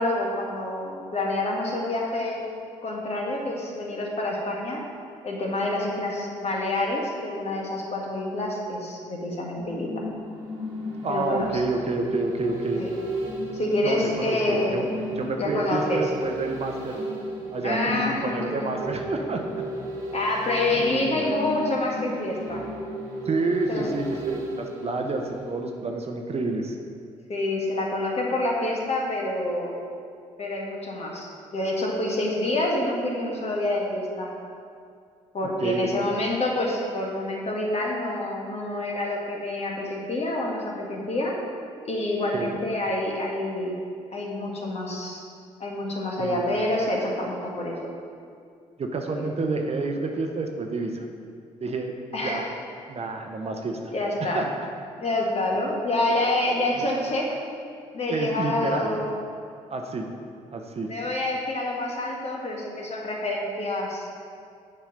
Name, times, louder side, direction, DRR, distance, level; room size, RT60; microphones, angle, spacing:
voice 1, 0.0-2.4 2.8-4.8 5.2-10.0 11.1-11.5 12.8-12.9 13.5-14.8 15.4-16.1 17.6-18.7 20.1-22.6 23.7-24.0 27.3-29.7 30.4-34.3 35.3-41.3 41.9-43.8 44.1-45.2 45.6-47.7 49.1-49.2 52.1-52.5 53.9-54.4 55.0-57.4 57.9-59.1 60.9-64.1, left 1 dB, 45° left, -2 dB, 1.6 m, -27 dB
sound 1, 9.5-25.8 26.1-26.2, equal, 90° right, 1.3 m, -34 dB
voice 2, 11.0-12.8 13.8-17.0 17.5-19.6 20.4-21.3 23.2-26.8 35.6-35.9 42.3-42.5 46.2-46.4 48.8-51.0 51.6-51.9 52.2-52.5 52.9-53.9 54.2-54.7 56.7-56.8 58.1-59.0 59.7-60.1 60.5-60.9, right 3 dB, 40° right, 3 dB, 0.8 m, -29 dB
7.0 x 4.4 x 5.2 m, 2.3 s
hypercardioid pair, 50°, 15 cm